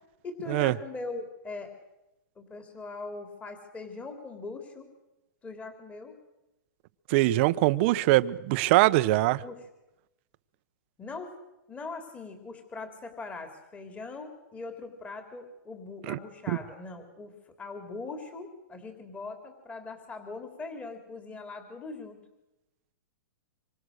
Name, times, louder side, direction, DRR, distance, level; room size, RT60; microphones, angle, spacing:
voice 1, 0.2-1.7 2.3-4.9 5.4-6.2 9.4-9.7 11.0-11.3 11.7-22.2, left 3 dB, 10° left, 3.4 m, -41 dB
voice 2, 7.1-9.4 16.1-16.2 16.5-16.6, right 17 dB, 35° right, 1.0 m, -23 dB
26.5 x 24.5 x 6.6 m
hypercardioid pair, 155°, 10 cm